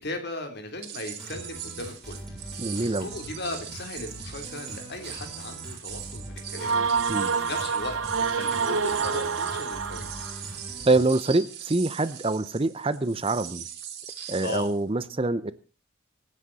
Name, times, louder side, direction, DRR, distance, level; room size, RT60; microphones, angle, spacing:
voice 1, 0.0-2.2 3.0-6.7 7.3-8.0 8.3-10.1 14.4-14.7, left 2 dB, 50° left, 5 dB, 3.5 m, -37 dB
sound 1, 0.8-14.8, right 9 dB, 50° right, 3.1 m, -40 dB
sound 2, 1.2-11.0, equal, 5° left, 7.5 m, -42 dB
voice 2, 2.6-3.1 7.1-7.3 10.8-13.7 14.3-15.5, right 2 dB, 25° right, 15 dB, 0.7 m, -25 dB
sound 3, 6.6-10.4, right 5 dB, 70° right, 0.9 m, -27 dB
25.5 x 9.9 x 4.2 m, 0.34 s
head